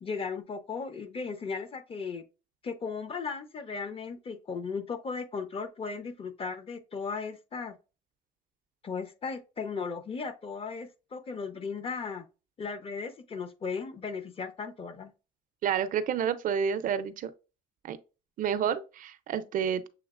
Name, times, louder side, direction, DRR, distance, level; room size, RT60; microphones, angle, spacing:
voice 1, 0.0-2.2 2.6-7.8 8.8-12.2 12.6-15.1, left 5 dB, 35° left, 0.7 m, -36 dB
voice 2, 15.6-17.3 17.8-18.0 18.4-19.9, right 8 dB, 55° right, 0.5 m, -29 dB
7.0 x 2.8 x 2.4 m
cardioid pair, 110°, 17 cm